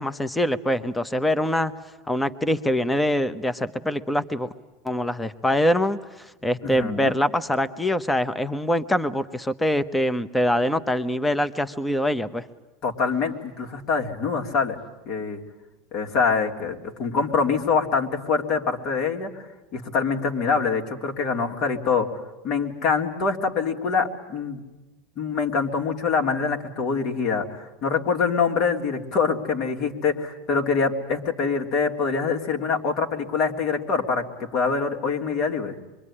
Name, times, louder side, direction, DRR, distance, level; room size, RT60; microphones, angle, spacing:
voice 1, 0.0-1.7 2.1-4.5 4.8-12.4, left 1 dB, 10° left, 13 dB, 1.0 m, -24 dB
voice 2, 6.6-7.1 12.8-14.8 15.0-15.4 15.9-19.5 19.7-22.1 22.4-24.6 25.2-35.7, left 5 dB, 55° left, 2 dB, 3.1 m, -25 dB
25.0 x 23.5 x 10.0 m, 1.1 s
supercardioid pair, 105°, 0 cm